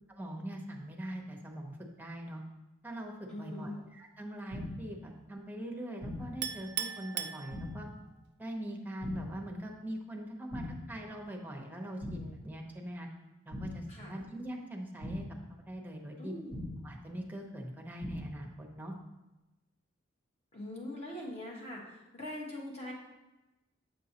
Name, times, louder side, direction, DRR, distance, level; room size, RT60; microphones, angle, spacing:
voice 1, 0.1-2.4 2.8-7.9 8.4-13.1 13.4-15.3 15.7-16.3 16.8-18.9, right 1 dB, 10° right, 1 dB, 0.7 m, -42 dB
voice 2, 3.3-3.8 13.9-14.1 16.2-16.6 20.5-22.9, left 1 dB, 30° left, -2 dB, 1.4 m, -42 dB
sound 1, 4.5-5.0 6.0-6.5 7.5-8.0 9.0-9.5 10.5-11.0 12.0-12.5 13.5-14.0 15.0-15.5 16.5-17.0 18.0-18.5, left 1 dB, 55° left, 1.8 m, -41 dB
Chink clink, 6.4-8.1, right 9 dB, 55° right, 0.4 m, -38 dB
7.8 x 5.3 x 2.9 m, 1.0 s
head